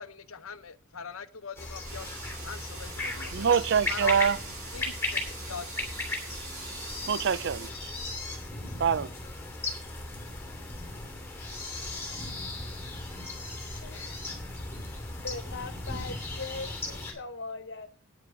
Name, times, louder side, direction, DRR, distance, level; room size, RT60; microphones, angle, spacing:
voice 1, 0.0-2.1 2.4-3.5 3.9-4.3 4.7-5.7, left 5 dB, 75° left, 0.8 m, -41 dB
sound 1, 1.6-17.1, left 2 dB, 10° left, 2.8 m, -37 dB
sound 2, 1.8-7.7, right 4 dB, 80° right, 6.7 m, -43 dB
voice 2, 3.3-4.4 7.1-7.9 8.8-9.1, right 7 dB, 55° right, 0.4 m, -25 dB
voice 3, 13.8-14.2 15.2-17.9, left 3 dB, 55° left, 1.4 m, -40 dB
9.4 x 7.8 x 6.1 m
head